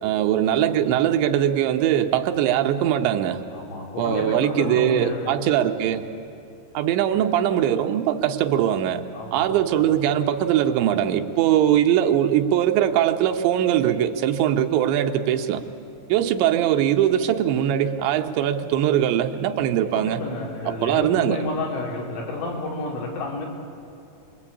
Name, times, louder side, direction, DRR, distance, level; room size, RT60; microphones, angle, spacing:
voice 1, 0.0-3.4 4.0-6.1 6.7-9.0 9.3-15.6 16.1-20.2 20.7-21.4, right 10 dB, 80° right, 6 dB, 3.1 m, -21 dB
voice 2, 3.5-5.5 9.1-9.6 19.9-23.5, left 2 dB, 90° left, -2 dB, 5.8 m, -30 dB
27.5 x 21.0 x 8.6 m, 2.6 s
omnidirectional pair, 5.3 m